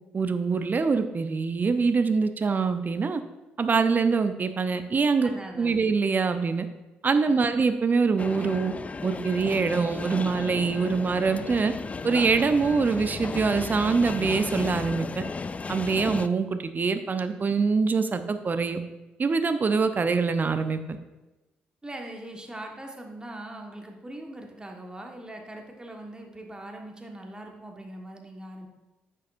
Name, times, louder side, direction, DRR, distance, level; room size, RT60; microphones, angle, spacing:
voice 1, 0.1-3.2 3.6-5.3 5.6-6.7 7.0-8.7 9.0-11.7 12.0-15.2 15.7-18.8 19.2-20.8, right 4 dB, 35° right, 9 dB, 0.7 m, -24 dB
voice 2, 5.2-5.8 7.4-7.5 21.8-28.7, right 1 dB, 15° right, 2 dB, 1.5 m, -41 dB
sound 1, 8.2-16.3, left 4 dB, 25° left, 0.4 m, -34 dB
10.5 x 7.4 x 2.6 m, 1.1 s
figure-of-eight pair, 40°, 5 cm